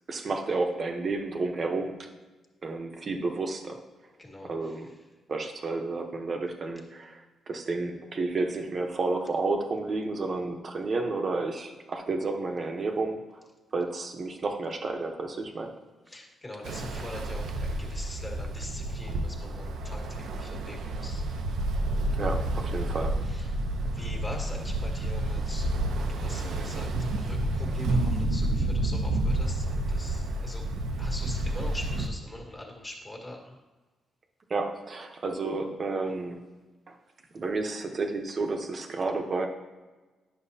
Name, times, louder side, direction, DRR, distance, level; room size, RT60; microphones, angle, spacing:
voice 1, 0.1-2.1 2.6-3.8 4.4-4.9 5.3-13.2 13.7-15.7 22.2-23.2 24.0-24.1 34.5-36.5 36.9-37.0 37.3-39.5, right 3 dB, 40° right, 4 dB, 0.9 m, -31 dB
voice 2, 4.2-4.5 16.1-21.2 24.0-25.7 26.1-26.9 27.2-30.7 31.0-33.4, left 1 dB, 20° left, -1 dB, 1.7 m, -42 dB
Ocean, 16.6-32.1, right 1 dB, 80° right, 0.7 m, -30 dB
10.0 x 6.1 x 2.8 m, 1.3 s
cardioid pair, 100°, 0 cm